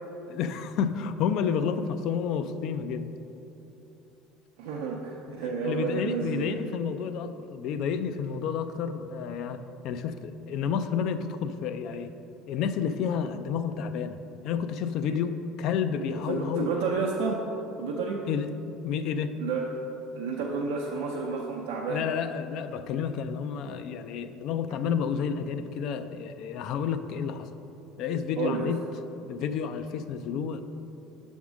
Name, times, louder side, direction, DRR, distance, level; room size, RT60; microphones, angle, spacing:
voice 1, 0.3-3.1 5.6-12.1 12.5-14.2 14.4-16.8 18.3-18.5 18.8-19.3 21.9-27.5 28.0-28.8 29.3-30.6, left 7 dB, 65° left, 10 dB, 0.4 m, -30 dB
voice 2, 4.6-6.6 16.1-17.4 17.8-18.2 19.4-19.7 20.1-22.1 28.4-28.7, right 4 dB, 85° right, -3 dB, 0.6 m, -30 dB
7.1 x 3.6 x 6.2 m, 3.0 s
supercardioid pair, 95°, 0 cm